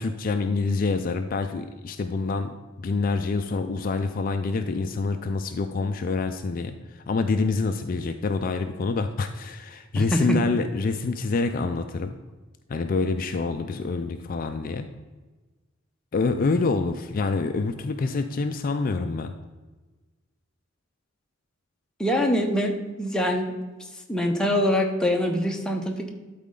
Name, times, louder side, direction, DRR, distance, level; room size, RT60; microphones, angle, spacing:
voice 1, 0.0-12.1 12.7-14.9 16.1-19.3, left 3 dB, 45° left, 7 dB, 0.4 m, -26 dB
voice 2, 10.0-10.4 22.0-23.5 24.1-26.1, equal, 5° left, 1 dB, 0.8 m, -24 dB
12.0 x 4.2 x 3.8 m, 1.2 s
head